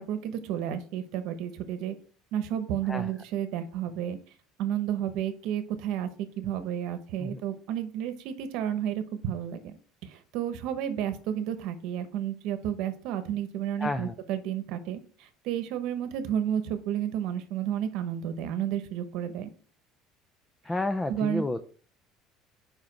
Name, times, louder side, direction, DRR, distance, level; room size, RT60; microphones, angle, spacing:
voice 1, 0.0-1.9 2.3-4.2 4.6-6.1 6.4-9.8 10.0-19.5 21.1-21.4, right 10 dB, 60° right, 10 dB, 1.0 m, -31 dB
voice 2, 13.8-14.1 20.6-21.6, left 2 dB, 10° left, 9 dB, 0.4 m, -30 dB
5.2 x 4.9 x 6.0 m, 0.42 s
cardioid pair, 160°, 0 cm